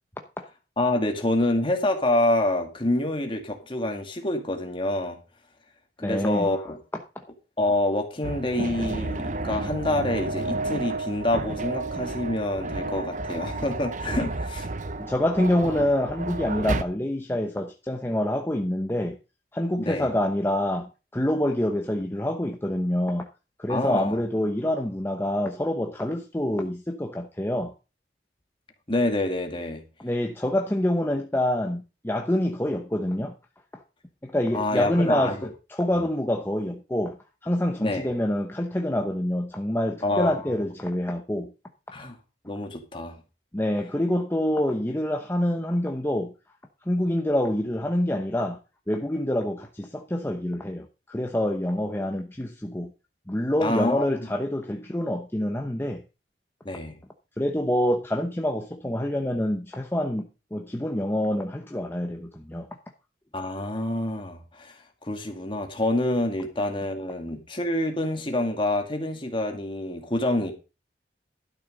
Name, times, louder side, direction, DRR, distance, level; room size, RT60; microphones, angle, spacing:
voice 1, 0.8-5.2 6.0-6.8 7.6-14.7 19.8-20.1 23.7-24.2 28.9-29.8 34.5-35.5 37.8-38.1 40.0-40.7 41.9-42.2 42.4-43.1 53.6-54.1 56.6-56.9 63.3-70.5, left 1 dB, 30° left, 2.2 m, -27 dB
voice 2, 6.0-6.5 15.0-19.2 19.5-23.3 23.6-27.7 30.0-33.3 34.2-37.2 37.4-41.5 43.5-46.3 46.9-48.6 48.9-52.9 53.3-56.0 57.4-62.7, left 1 dB, 15° left, 0.9 m, -26 dB
sound 1, 8.2-16.8, right 2 dB, 45° right, 0.7 m, -31 dB
12.0 x 6.8 x 5.3 m
head